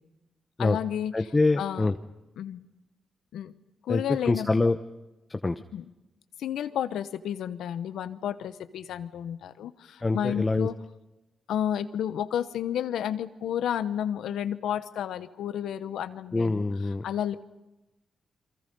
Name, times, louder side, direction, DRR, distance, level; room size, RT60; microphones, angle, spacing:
voice 1, 0.6-1.1 1.6-1.9 2.4-2.6 3.3-3.5 3.8-4.7 5.7-5.9 6.4-10.8 11.5-16.6 17.0-17.4, left 10 dB, 85° left, 13 dB, 0.9 m, -31 dB
voice 2, 1.1-2.0 3.9-4.8 5.3-5.6 10.0-10.7 16.3-17.0, left 3 dB, 25° left, 8 dB, 0.9 m, -25 dB
29.0 x 23.5 x 5.4 m, 1.0 s
cardioid pair, 75°, 0 cm